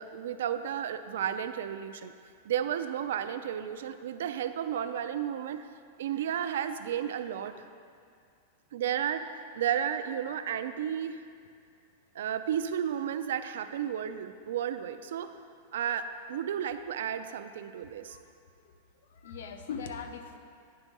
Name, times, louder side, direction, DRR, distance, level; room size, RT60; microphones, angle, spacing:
voice 1, 0.0-2.1 2.4-5.7 6.0-7.5 8.7-9.3 9.6-11.2 12.1-15.3 15.7-18.2, right 9 dB, 70° right, 10 dB, 0.4 m, -33 dB
voice 2, 19.1-20.4, left 6 dB, 75° left, 7 dB, 0.6 m, -40 dB
9.6 x 3.5 x 5.3 m, 2.3 s
supercardioid pair, 175°, 0 cm